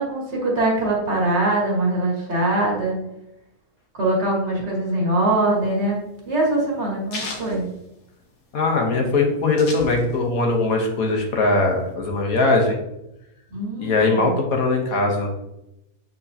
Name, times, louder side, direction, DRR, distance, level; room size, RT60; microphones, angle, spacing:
voice 1, 0.0-3.0 3.9-7.7 13.5-14.4, right 2 dB, 45° right, -4 dB, 2.0 m, -22 dB
sound 1, 5.4-8.5 8.9-9.0 9.1-10.4 10.8-11.9, left 3 dB, 90° left, 1.8 m, -36 dB
voice 2, 8.5-12.8 13.8-15.3, left 3 dB, 65° left, 1 dB, 1.5 m, -20 dB
8.1 x 4.5 x 2.8 m, 0.86 s
omnidirectional pair, 1.6 m